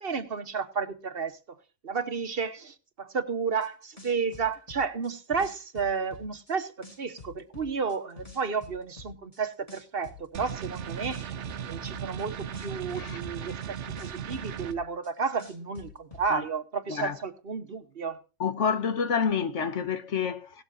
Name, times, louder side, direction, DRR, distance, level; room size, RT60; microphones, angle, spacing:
voice 1, 0.0-1.6 1.8-11.4 11.7-18.2, right 5 dB, 55° right, 1.4 m, -32 dB
sound 1, 3.6-3.7 4.0-6.5 6.8-9.4 9.7-12.2 12.5-15.1 15.4-16.3, left 3 dB, 30° left, 3.4 m, -47 dB
sound 2, 10.3-14.7, right 9 dB, 75° right, 1.1 m, -37 dB
voice 2, 18.4-20.6, left 6 dB, 80° left, 1.6 m, -28 dB
17.5 x 12.5 x 2.7 m
omnidirectional pair, 1.2 m